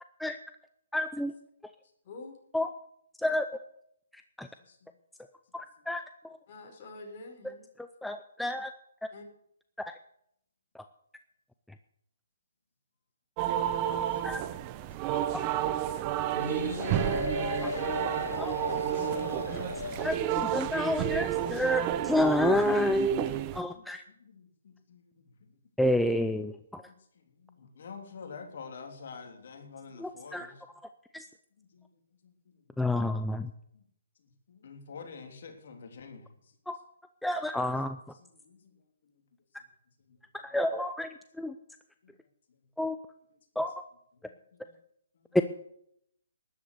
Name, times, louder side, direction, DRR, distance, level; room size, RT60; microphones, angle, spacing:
voice 1, 0.9-1.3 2.5-2.7 3.2-3.5 4.1-4.5 5.5-6.4 7.8-8.7 9.9-10.0 10.7-10.8 14.2-14.4 15.3-15.4 17.4-17.7 18.4-18.6 20.0-24.0 25.8-26.8 30.0-30.5 31.1-31.3 32.8-33.5 36.7-36.8 37.2-38.0 40.4-41.5 42.8-43.0 43.6-43.7 45.3-45.4, left 1 dB, ahead, 8 dB, 0.5 m, -29 dB
voice 2, 2.0-2.4 6.5-7.7 9.1-9.2 18.9-19.2 19.9-20.2, left 2 dB, 40° left, 2 dB, 5.2 m, -47 dB
voice 3, 4.6-5.0 13.6-14.3 14.8-15.1 23.4-25.1 25.4-25.5 26.9-30.5 31.6-32.9 33.7-33.8 34.5-36.5 38.2-38.8 40.0-40.2 42.0-42.1 44.2-44.8 45.2-45.4, left 5 dB, 55° left, 4 dB, 3.4 m, -50 dB
sound 1, 13.4-23.6, right 12 dB, 25° right, 0.9 m, -31 dB
sound 2, 16.3-20.5, left 4 dB, 85° left, 1.6 m, -36 dB
13.0 x 11.0 x 6.8 m, 0.71 s
hypercardioid pair, 150°, 0 cm